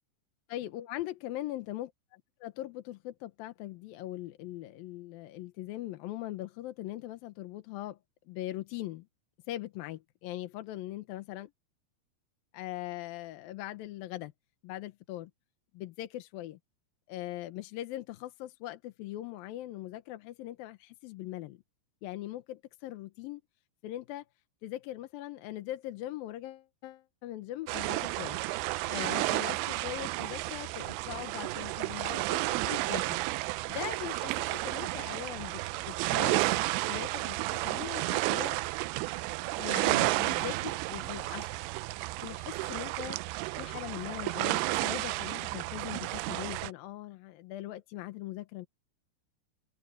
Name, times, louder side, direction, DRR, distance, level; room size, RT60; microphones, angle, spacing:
voice 1, 0.5-8.0 8.3-9.1 9.5-11.5 12.5-14.3 14.6-15.3 15.7-16.6 17.1-21.6 22.0-23.4 23.8-24.2 24.6-28.4 28.9-33.2 33.7-35.6 35.9-36.5 36.7-38.6 39.6-41.5 42.2-43.2 43.6-48.7, left 15 dB, 70° left, 2.3 m, -41 dB
sound 1, 27.7-46.7, right 20 dB, 85° right, 2.8 m, -32 dB
open air
omnidirectional pair, 5.0 m